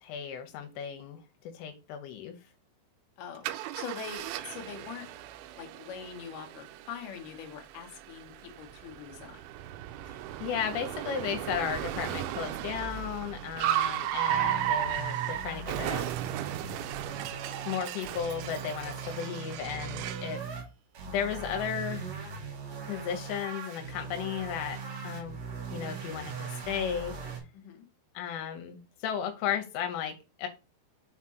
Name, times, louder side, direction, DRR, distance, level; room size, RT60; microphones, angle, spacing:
voice 1, 0.0-2.4 10.1-16.1 17.7-20.4 21.1-22.1 22.9-25.4 25.7-27.1 28.1-30.5, left 8 dB, 90° left, 6 dB, 3.2 m, -35 dB
voice 2, 3.2-5.1 5.6-9.4 13.5-13.8 27.5-27.9, left 7 dB, 70° left, 3 dB, 2.0 m, -43 dB
Car, 3.4-20.3, right 12 dB, 85° right, 2.9 m, -35 dB
sound 1, 14.3-20.6 20.9-27.4, right 5 dB, 65° right, 1.6 m, -40 dB
6.8 x 3.6 x 4.3 m, 0.30 s
omnidirectional pair, 5.6 m